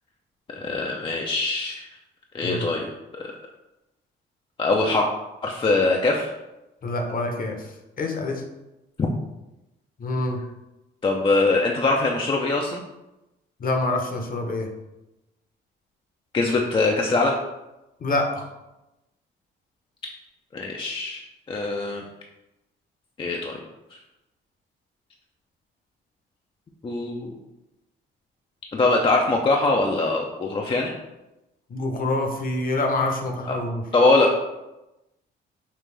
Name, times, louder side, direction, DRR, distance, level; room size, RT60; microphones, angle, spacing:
voice 1, 0.5-1.9 2.3-2.9 3.1-3.3 4.6-5.1 5.4-6.3 9.0-9.1 11.0-12.8 16.3-17.4 20.5-21.2 21.5-22.0 23.2-23.6 23.9-24.0 26.8-27.4 28.7-30.9 33.5-33.6 33.9-34.6, left 2 dB, 25° left, 0 dB, 0.5 m, -22 dB
voice 2, 6.8-8.4 10.0-10.4 13.6-14.7 18.0-18.5 31.7-33.8, left 2 dB, 45° left, 3 dB, 0.8 m, -26 dB
5.2 x 2.5 x 3.3 m, 0.97 s
cardioid pair, 90°, 20 cm